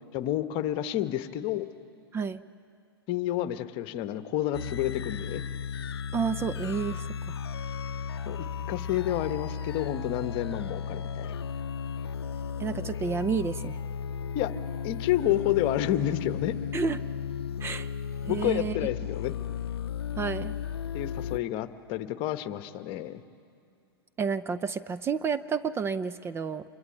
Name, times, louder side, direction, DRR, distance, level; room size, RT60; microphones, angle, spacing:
voice 1, 0.1-1.7 3.1-5.4 8.3-11.4 14.3-14.5 14.8-16.6 18.2-19.3 20.9-23.2, left 13 dB, 40° left, 11 dB, 1.2 m, -30 dB
sound 1, 4.5-21.4, left 7 dB, 80° left, 0.6 m, -35 dB
voice 2, 6.1-7.0 12.6-13.8 16.7-17.0 17.6-17.9 18.3-18.8 20.2-20.5 24.2-26.6, right 5 dB, 20° right, 12 dB, 0.6 m, -30 dB
26.5 x 22.5 x 9.2 m, 2.4 s
hypercardioid pair, 110°, 13 cm